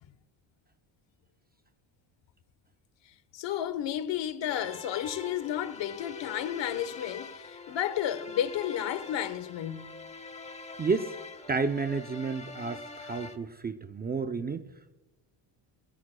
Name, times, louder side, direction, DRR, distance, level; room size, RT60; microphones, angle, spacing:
voice 1, 3.1-10.0, left 11 dB, 60° left, 1.1 m, -32 dB
Beautiful String Music, 4.5-13.4, left 4 dB, 15° left, 1.0 m, -44 dB
voice 2, 10.8-11.2 11.5-14.6, right 4 dB, 20° right, 0.4 m, -31 dB
22.0 x 21.5 x 2.2 m
cardioid pair, 125°, 49 cm